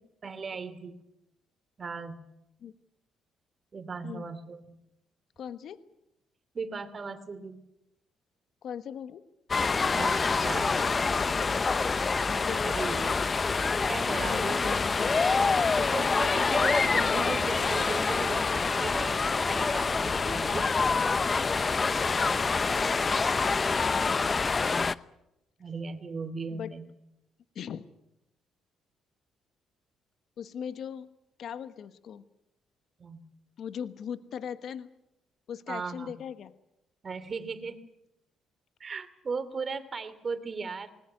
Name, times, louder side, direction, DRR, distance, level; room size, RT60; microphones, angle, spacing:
voice 1, 0.2-0.9 1.8-2.2 3.7-4.8 6.5-7.6 9.9-10.7 12.6-13.2 13.8-14.8 15.9-20.7 25.6-26.9 33.0-33.2 35.7-36.1 37.0-37.8 38.8-40.9, right 4 dB, 40° right, 11 dB, 2.8 m, -37 dB
voice 2, 5.4-5.8 8.6-9.2 10.8-11.7 12.5-12.6 14.2-15.1 20.5-20.6 23.8-24.4 26.5-26.7 27.5-27.8 30.4-31.1 31.4-32.2 33.6-34.9 35.5-36.5, left 8 dB, 65° left, 12 dB, 1.3 m, -39 dB
sound 1, 9.5-24.9, left 4 dB, 30° left, 0.8 m, -26 dB
20.0 x 20.0 x 9.3 m, 0.86 s
cardioid pair, 85°, 0 cm